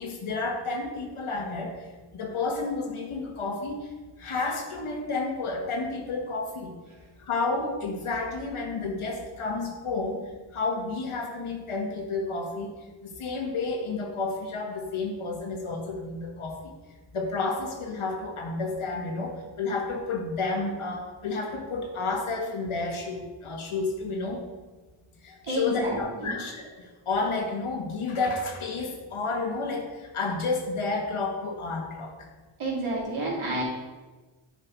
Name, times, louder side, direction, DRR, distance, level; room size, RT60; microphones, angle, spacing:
voice 1, 0.0-1.9 2.1-3.9 4.2-6.8 7.2-12.7 13.0-16.7 17.1-24.4 25.2-32.3, left 3 dB, 85° left, 1 dB, 1.9 m, -31 dB
voice 2, 25.3-26.3 32.6-33.6, right 1 dB, 75° right, -4 dB, 3.2 m, -30 dB
11.0 x 5.6 x 4.7 m, 1.2 s
wide cardioid pair, 180°, 49 cm